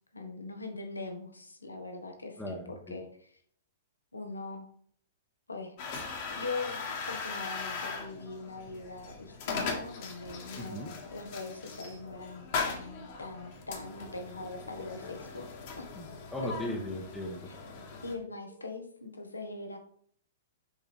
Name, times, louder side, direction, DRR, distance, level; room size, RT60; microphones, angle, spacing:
voice 1, 0.1-2.6 2.9-3.4 4.1-4.7 5.5-6.1 6.4-15.9 16.4-16.5 17.5-17.6 18.0-19.8, left 3 dB, 80° left, 4 dB, 1.3 m, -41 dB
voice 2, 2.4-3.0 10.6-10.9 15.9-17.5, left 1 dB, 5° left, -2 dB, 1.1 m, -38 dB
sound 1, 5.8-18.1, left 4 dB, 45° left, 1.6 m, -39 dB
7.0 x 5.3 x 3.5 m, 0.62 s
figure-of-eight pair, 105°, 0 cm